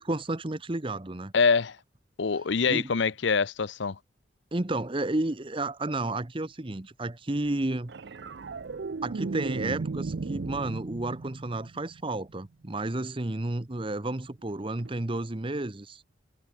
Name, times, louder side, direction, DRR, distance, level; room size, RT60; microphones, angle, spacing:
voice 1, 0.0-1.3 2.7-2.9 4.5-7.9 9.0-16.0, right 2 dB, 25° right, 0.9 m, -31 dB
voice 2, 1.3-1.8 2.2-4.0, left 5 dB, 65° left, 0.6 m, -25 dB
sound 1, 7.9-12.4 14.8-15.0, right 4 dB, 55° right, 0.5 m, -36 dB
head